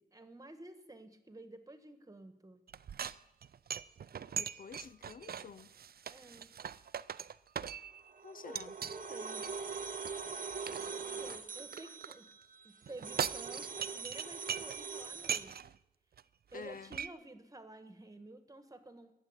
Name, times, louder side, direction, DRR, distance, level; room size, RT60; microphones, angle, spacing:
voice 1, 0.0-2.6 6.1-6.5 8.4-9.6 10.8-12.3 12.6-15.7 16.5-19.1, right 2 dB, 20° right, 1.7 m, -51 dB
sound 1, 2.7-8.1 8.5-9.0 9.4-12.1 12.8-14.8 15.1-15.8 16.2-16.3 16.5-17.1, right 8 dB, 75° right, 0.4 m, -41 dB
voice 2, 4.3-5.7 8.2-8.7 16.5-16.9, left 6 dB, 60° left, 0.4 m, -49 dB
sound 2, 8.0-15.4, right 5 dB, 55° right, 1.0 m, -43 dB
17.0 x 7.4 x 9.7 m
wide cardioid pair, 120°, 16 cm